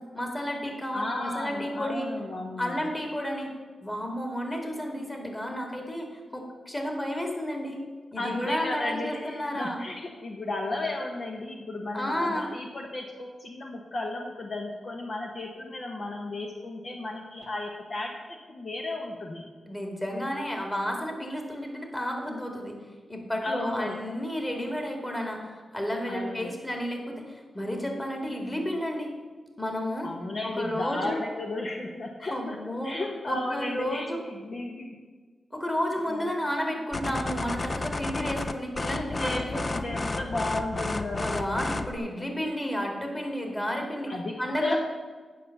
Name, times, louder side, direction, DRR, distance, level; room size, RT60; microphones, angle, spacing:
voice 1, 0.1-2.1 2.6-3.5 3.8-7.8 8.1-9.8 11.9-12.5 19.7-22.8 23.1-29.1 29.6-30.1 30.4-31.2 32.3-32.9 33.3-34.2 35.5-39.9 41.2-44.1 44.4-44.8, equal, 20° left, 2 dB, 2.2 m, -32 dB
voice 2, 0.9-2.8 8.2-18.1 18.5-19.5 23.4-24.0 26.1-26.5 30.0-35.0 36.1-36.3 38.8-41.3 44.1-44.8, left 2 dB, 55° left, 1 dB, 1.0 m, -34 dB
sound 1, 36.9-42.0, left 2 dB, 35° left, 0.6 m, -32 dB
9.1 x 5.6 x 7.0 m, 1.4 s
cardioid pair, 80°, 0 cm